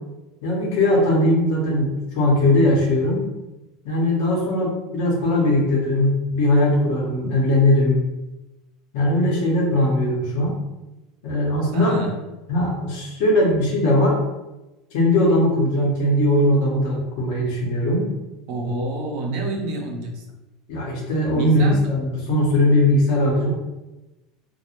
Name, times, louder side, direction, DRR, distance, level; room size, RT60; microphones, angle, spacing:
voice 1, 0.4-3.2 3.8-8.0 8.9-10.5 11.2-12.0 12.5-14.2 14.9-18.1 20.7-23.5, left 1 dB, 70° left, -2 dB, 0.8 m, -19 dB
voice 2, 11.7-12.1 18.5-20.2 21.4-21.8, right 2 dB, 70° right, 1 dB, 0.5 m, -28 dB
2.1 x 2.0 x 2.8 m, 1.0 s
hypercardioid pair, 90°, 0 cm